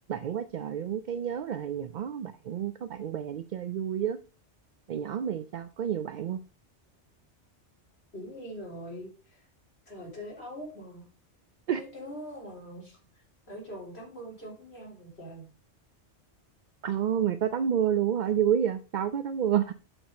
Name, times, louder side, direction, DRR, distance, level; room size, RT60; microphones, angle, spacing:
voice 1, 0.1-4.2 4.9-6.4 11.7-11.8 16.8-19.7, right 9 dB, 55° right, 0.5 m, -29 dB
voice 2, 8.1-9.5 9.9-11.1 11.8-15.5, equal, 65° left, 4.0 m, -43 dB
7.9 x 6.1 x 5.0 m
omnidirectional pair, 1.2 m